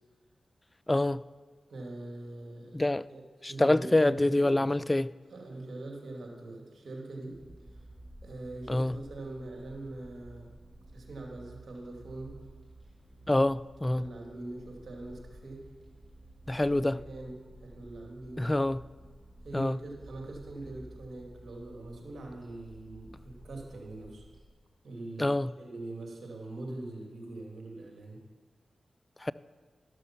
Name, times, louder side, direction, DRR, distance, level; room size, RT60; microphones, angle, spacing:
voice 1, 0.9-1.2 2.7-3.0 3.4-5.1 8.7-8.9 13.3-14.0 16.5-17.0 18.4-18.8 19.5-19.8 25.2-25.5 29.2-29.3, left 1 dB, 25° left, 0.3 m, -26 dB
voice 2, 1.7-2.8 3.1-4.7 5.3-7.4 7.7-7.8 8.2-10.5 10.9-12.4 13.9-15.6 16.5-18.5 19.4-24.3 24.8-25.3 25.6-28.2, right 2 dB, 70° right, 2.2 m, -43 dB
sound 1, 7.3-24.5, right 1 dB, 40° right, 2.5 m, -52 dB
12.5 x 6.4 x 5.7 m
cardioid pair, 40°, 0 cm